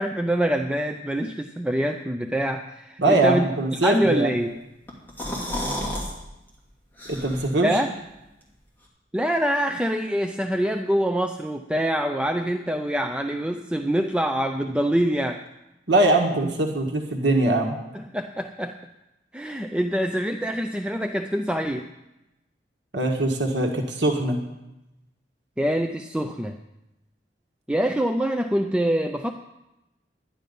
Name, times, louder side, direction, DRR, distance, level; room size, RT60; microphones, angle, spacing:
voice 1, 0.0-3.5 3.8-4.6 7.6-7.9 9.1-15.4 17.9-18.8 19.3-21.9 25.6-26.5 27.7-29.3, right 1 dB, 5° right, 5 dB, 0.4 m, -25 dB
voice 2, 3.0-4.3 7.1-7.8 15.9-17.8 22.9-24.4, right 2 dB, 75° right, 1 dB, 1.6 m, -22 dB
sound 1, 4.9-6.1 6.5-6.6 7.0-7.6, left 1 dB, 10° left, 2.6 m, -31 dB
11.5 x 10.5 x 5.4 m, 0.94 s
head